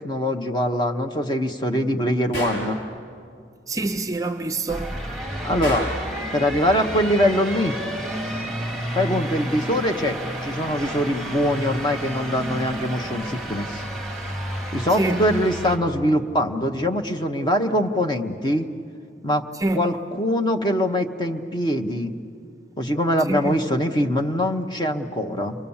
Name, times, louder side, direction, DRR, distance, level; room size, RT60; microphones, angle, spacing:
voice 1, 0.0-2.8 5.4-5.9 6.3-7.7 8.9-13.8 14.7-18.7 19.2-19.4 19.7-22.1 22.8-25.6, equal, 25° left, 1.0 m, -23 dB
Gunshot gunfire, 2.3-2.8 5.6-6.1, equal, 90° left, 6.6 m, -28 dB
voice 2, 3.7-5.0 14.9-15.3 19.5-19.8 23.3-23.6, right 2 dB, 20° right, 0.6 m, -26 dB
sound 1, 4.7-15.8, right 1 dB, ahead, 2.3 m, -31 dB
29.5 x 22.5 x 7.2 m
head